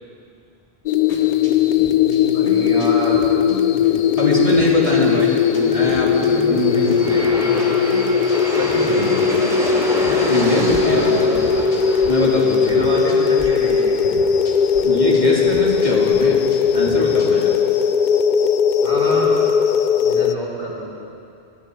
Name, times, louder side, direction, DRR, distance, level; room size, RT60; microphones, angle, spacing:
sound 1, 0.9-20.3, left 7 dB, 60° left, 0.5 m, -18 dB
sound 2, 1.1-12.1 12.4-13.5 13.8-17.5, equal, 80° left, 2.8 m, -36 dB
voice 1, 2.2-3.3 5.0-5.2 6.7-6.8 7.5-7.6 8.5-9.6 10.8-11.4 12.7-14.0 18.8-19.4 20.0-20.9, right 1 dB, 60° right, -7 dB, 3.9 m, -27 dB
voice 2, 4.2-7.5 10.1-11.0 11.5-11.7 12.0-12.8 14.8-16.4 16.7-17.5, equal, 30° left, -5 dB, 2.5 m, -22 dB
Aircraft, 6.1-17.0, equal, 5° right, 3.1 m, -30 dB
21.0 x 14.0 x 4.5 m, 2.4 s
omnidirectional pair, 1.1 m